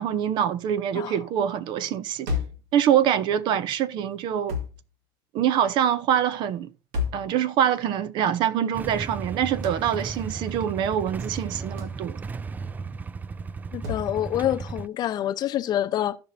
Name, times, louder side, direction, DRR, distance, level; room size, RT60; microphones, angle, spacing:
voice 1, 0.0-2.3 2.7-4.6 5.3-6.7 7.1-12.2, right 9 dB, 60° right, 0.7 m, -24 dB
sound 1, 2.3-2.7 4.5-4.8 6.9-7.3 9.6-9.9 11.8-12.0 13.8-14.1, left 5 dB, 80° right, 2.0 m, -30 dB
Motorcycle / Engine starting / Idling, 8.7-14.9, right 4 dB, 20° right, 0.3 m, -35 dB
voice 2, 13.7-16.2, left 12 dB, 50° left, 0.7 m, -26 dB
15.0 x 5.2 x 2.7 m
supercardioid pair, 105°, 9 cm